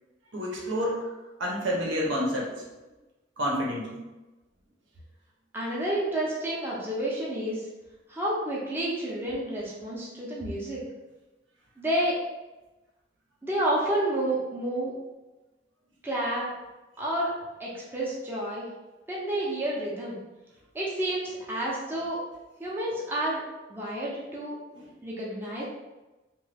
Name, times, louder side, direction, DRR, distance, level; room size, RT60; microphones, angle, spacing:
voice 1, 0.3-1.1 1.4-2.7 3.4-4.0 24.7-24.9, equal, 80° right, -2 dB, 0.8 m, -29 dB
voice 2, 5.5-7.7 8.1-10.8 11.8-12.2 13.4-14.9 16.0-16.5 17.0-17.3 17.6-18.7 19.1-20.2 20.7-22.2 22.6-23.4 23.7-24.6 25.0-25.6, right 1 dB, 10° right, -6 dB, 0.5 m, -30 dB
3.0 x 2.2 x 3.3 m, 1.1 s
head